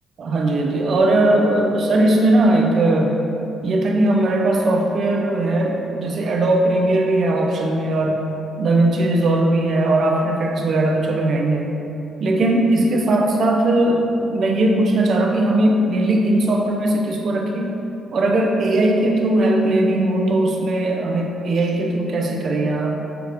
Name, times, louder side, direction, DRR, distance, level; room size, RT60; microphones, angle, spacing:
voice 1, 0.2-3.2 3.6-8.3 8.6-11.8 12.2-17.8 18.1-23.0, right 1 dB, 55° right, 1 dB, 0.5 m, -19 dB
5.8 x 2.4 x 3.4 m, 2.9 s
cardioid pair, 90°, 0 cm